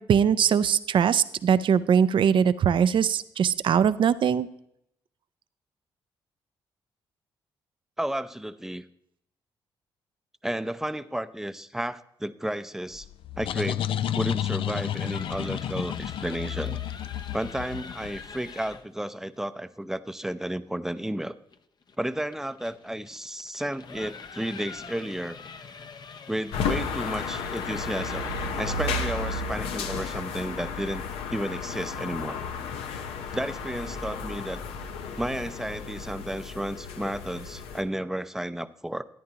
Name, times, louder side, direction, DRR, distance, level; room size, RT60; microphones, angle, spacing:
voice 1, 0.0-4.5, right 7 dB, 60° right, 15 dB, 0.6 m, -21 dB
voice 2, 8.0-8.8 10.4-13.1 13.4-13.8 14.1-16.8 17.3-21.4 22.0-25.4 26.3-31.0 31.3-32.4 33.3-34.6 35.2-39.0, right 1 dB, 5° right, 13 dB, 0.6 m, -32 dB
sound 1, 13.0-18.5, left 10 dB, 65° left, 0.4 m, -31 dB
sound 2, 14.8-18.9 21.5-28.7, left 5 dB, 45° left, 0.8 m, -44 dB
sound 3, 26.5-37.8, left 4 dB, 90° left, 0.8 m, -33 dB
13.5 x 10.5 x 2.9 m, 0.75 s
cardioid pair, 65°, 10 cm